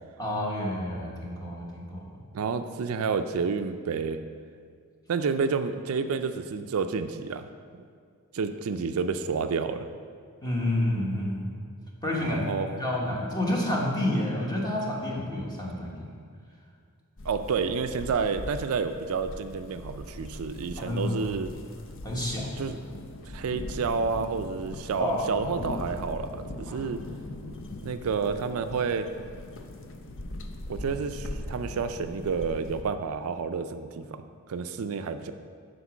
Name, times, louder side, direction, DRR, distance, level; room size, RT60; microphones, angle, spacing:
voice 1, 0.2-2.1 10.4-11.5 12.0-12.4 12.8-16.1 20.8-21.2 22.0-22.5 25.0-25.5 26.7-26.8, left 1 dB, 20° left, -3 dB, 1.3 m, -29 dB
voice 2, 2.3-4.2 5.1-7.5 7.7-7.8 8.3-9.9 12.2-12.8 17.2-21.5 22.6-22.8 23.3-27.0 27.8-29.1 30.7-34.2 34.5-35.3, right 5 dB, 70° right, 9 dB, 0.4 m, -30 dB
sound 1, 17.2-32.8, left 1 dB, 60° left, 0.6 m, -40 dB
8.1 x 5.2 x 6.0 m, 2.2 s
head